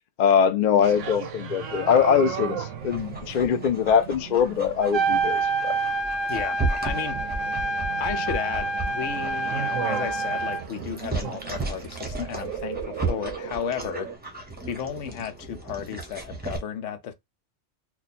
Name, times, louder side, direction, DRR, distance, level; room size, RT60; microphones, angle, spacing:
voice 1, 0.2-5.8, left 7 dB, 60° left, 0.5 m, -22 dB
sound 1, 0.8-14.2, right 7 dB, 90° right, 1.0 m, -36 dB
Dog, 2.8-16.6, right 3 dB, 10° right, 0.6 m, -35 dB
Trumpet, 4.8-10.6, right 3 dB, 55° right, 0.7 m, -27 dB
voice 2, 6.8-7.2 8.0-14.1 14.7-17.1, left 8 dB, 80° left, 1.0 m, -33 dB
3.0 x 2.3 x 4.1 m
omnidirectional pair, 1.3 m